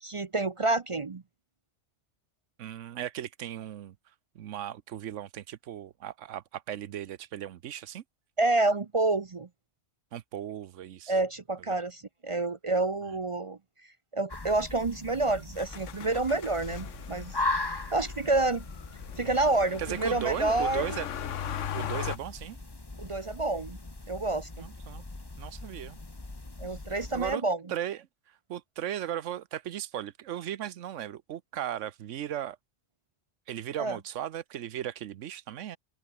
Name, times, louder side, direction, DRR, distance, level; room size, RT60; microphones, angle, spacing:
voice 1, 0.0-1.2 8.4-9.5 11.1-13.6 14.1-17.4 17.9-18.6 19.2-21.0 23.0-23.8 24.1-24.7 26.6-27.6 33.8-34.0, right 2 dB, 35° right, 0.6 m, -28 dB
voice 2, 2.6-4.0 4.3-8.0 10.1-11.1 11.7-11.8 13.0-13.1 19.8-21.1 21.7-22.6 24.6-25.0 25.4-26.0 27.1-27.4 27.7-32.6 33.5-35.8, right 11 dB, 85° right, 1.1 m, -37 dB
sound 1, 14.3-27.3, left 2 dB, 20° left, 1.4 m, -39 dB
Motor vehicle (road), 15.6-22.2, left 9 dB, 90° left, 1.2 m, -39 dB
open air
omnidirectional pair, 1.2 m